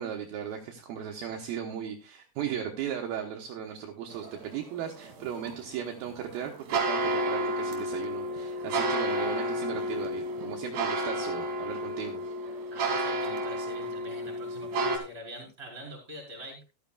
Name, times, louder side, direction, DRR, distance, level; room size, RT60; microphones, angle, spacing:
voice 1, 0.0-12.2, right 9 dB, 75° right, 2 dB, 2.5 m, -37 dB
sound 1, 4.1-15.0, right 1 dB, 50° right, 3.3 m, -31 dB
voice 2, 12.7-16.6, equal, 15° right, -1 dB, 4.6 m, -44 dB
14.0 x 12.5 x 2.4 m, 0.31 s
omnidirectional pair, 5.0 m